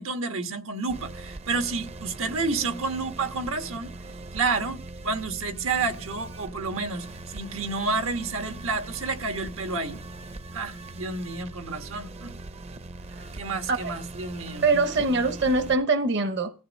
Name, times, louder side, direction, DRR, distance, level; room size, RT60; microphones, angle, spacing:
voice 1, 0.0-3.9 4.3-4.8 5.0-10.0 10.5-12.3 13.4-14.7, right 4 dB, 85° right, 1.5 m, -30 dB
sound 1, 0.9-15.8, right 2 dB, 30° right, 0.6 m, -41 dB
voice 2, 14.6-16.5, right 3 dB, 55° right, 1.0 m, -23 dB
15.0 x 9.1 x 5.3 m
head